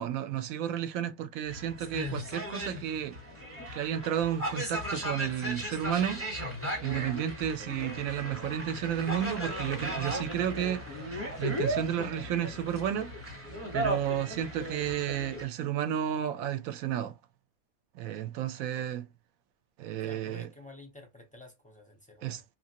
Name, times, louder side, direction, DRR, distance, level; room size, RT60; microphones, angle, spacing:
voice 1, 0.0-3.2 3.7-6.2 6.8-13.1 13.7-17.1 17.9-19.1 19.8-20.5 22.2-22.4, right 10 dB, 70° right, 0.9 m, -32 dB
sound 1, 1.5-15.5, equal, 10° right, 0.9 m, -36 dB
voice 2, 19.9-22.4, left 3 dB, 10° left, 0.3 m, -51 dB
2.9 x 2.4 x 2.8 m
omnidirectional pair, 1.6 m